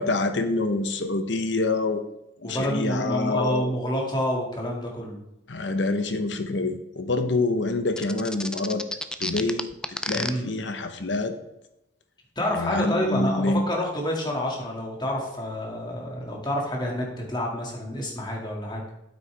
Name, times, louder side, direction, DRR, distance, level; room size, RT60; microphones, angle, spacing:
voice 1, 0.0-2.0 2.4-3.7 5.5-8.8 9.2-9.7 10.1-11.4 12.5-13.6, left 2 dB, 70° left, 8 dB, 1.0 m, -26 dB
voice 2, 2.4-5.2 10.1-10.5 12.4-18.8, equal, 25° left, -1 dB, 2.3 m, -28 dB
sound 1, 8.0-10.3, left 1 dB, 5° left, 0.4 m, -30 dB
9.0 x 8.6 x 3.4 m, 0.89 s
head